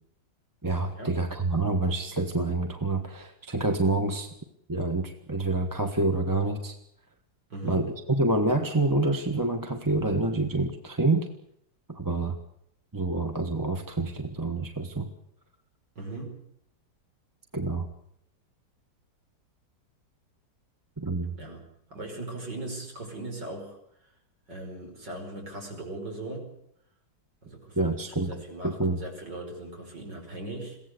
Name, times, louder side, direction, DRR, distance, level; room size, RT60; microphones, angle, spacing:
voice 1, 0.6-4.3 4.7-6.8 7.6-11.3 11.9-12.4 12.9-15.1 17.5-17.9 21.0-21.3 27.8-29.0, right 2 dB, 10° right, 5 dB, 1.1 m, -27 dB
voice 2, 7.5-7.9 16.0-16.4 21.3-21.6 21.9-24.1 24.5-26.6 27.4-30.8, right 2 dB, 65° right, 1 dB, 6.1 m, -39 dB
22.5 x 16.5 x 8.1 m, 0.73 s
omnidirectional pair, 2.0 m